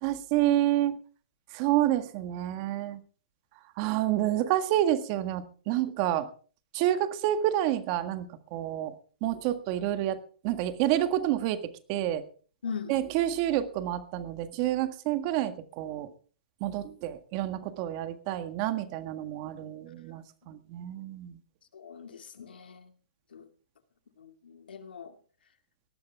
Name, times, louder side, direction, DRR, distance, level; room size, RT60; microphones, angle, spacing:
voice 1, 0.0-1.0 1.5-3.0 3.8-6.3 6.7-8.3 8.5-8.9 9.2-10.2 10.4-11.6 11.9-12.2 12.9-16.1 16.6-21.4, right 13 dB, 35° right, 10 dB, 1.7 m, -28 dB
voice 2, 12.6-13.0 21.7-22.9 23.3-23.5 24.2-25.1, left 6 dB, 85° left, 6 dB, 2.3 m, -41 dB
18.5 x 12.5 x 3.5 m, 0.40 s
hypercardioid pair, 150°, 5 cm